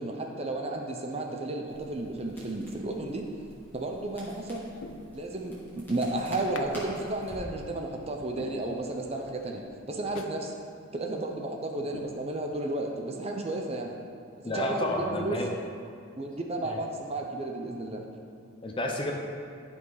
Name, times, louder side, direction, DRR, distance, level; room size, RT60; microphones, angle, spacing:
voice 1, 0.0-3.2 3.7-4.7 5.1-10.5 10.9-13.9 14.5-15.4 16.2-18.0, right 2 dB, 30° right, 1 dB, 0.7 m, -33 dB
Crackle, 1.7-9.7, equal, 10° left, 1.8 m, -49 dB
sound 1, 3.8-4.2 4.7-5.7 6.5-6.8 7.2-7.3 7.8-7.9 8.4-9.2 9.6-9.7 10.1-10.4 10.8-10.9 11.4-11.5 11.9-12.8 13.2-13.3, left 4 dB, 80° left, 0.5 m, -45 dB
voice 2, 14.4-15.5 16.6-16.8 18.6-19.1, left 1 dB, 25° left, 1 dB, 0.7 m, -30 dB
11.0 x 5.3 x 4.0 m, 2.4 s
head